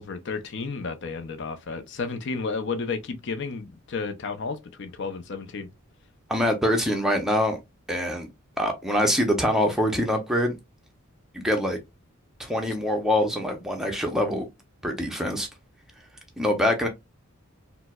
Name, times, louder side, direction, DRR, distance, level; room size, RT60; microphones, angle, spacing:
voice 1, 0.0-5.7, left 4 dB, 50° left, 0.5 m, -32 dB
voice 2, 6.3-7.6 7.9-8.3 8.6-10.5 11.3-11.8 12.4-14.4 14.8-15.5 16.4-16.9, equal, ahead, 0.5 m, -24 dB
4.4 x 2.0 x 2.2 m
head